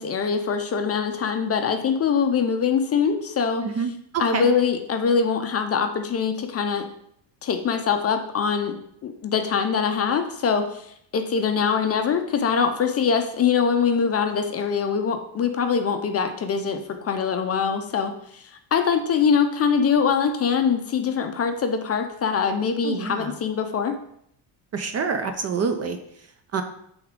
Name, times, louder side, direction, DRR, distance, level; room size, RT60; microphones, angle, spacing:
voice 1, 0.0-3.7 4.2-6.9 7.4-8.7 9.0-10.8 11.1-24.0, left 6 dB, 30° left, 6 dB, 0.5 m, -23 dB
voice 2, 3.6-4.5 22.8-23.3 24.7-26.0 26.5-26.6, right 5 dB, 35° right, 7 dB, 0.4 m, -27 dB
8.2 x 3.5 x 3.6 m, 0.71 s
cardioid pair, 135°, 48 cm